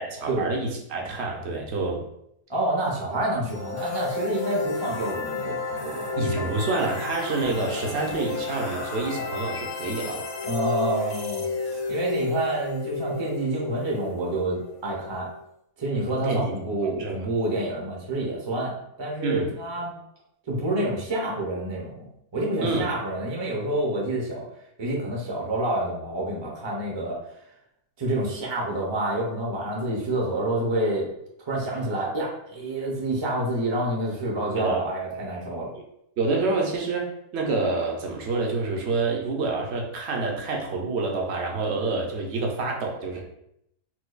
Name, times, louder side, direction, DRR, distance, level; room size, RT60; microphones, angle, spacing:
voice 1, 0.1-2.0 6.2-10.2 16.2-16.6 17.0-17.3 19.2-19.5 22.6-22.9 34.6-34.9 36.2-43.2, right 3 dB, 60° right, 0 dB, 0.8 m, -27 dB
voice 2, 2.5-6.6 10.4-15.3 15.8-19.9 20.5-22.1 22.3-24.5 24.8-27.2 28.0-31.1 31.4-35.7, right 1 dB, 35° right, -3 dB, 0.4 m, -28 dB
sound 1, 3.5-15.3, left 4 dB, 65° left, 1.0 m, -32 dB
4.4 x 2.2 x 2.4 m, 0.77 s
omnidirectional pair, 1.5 m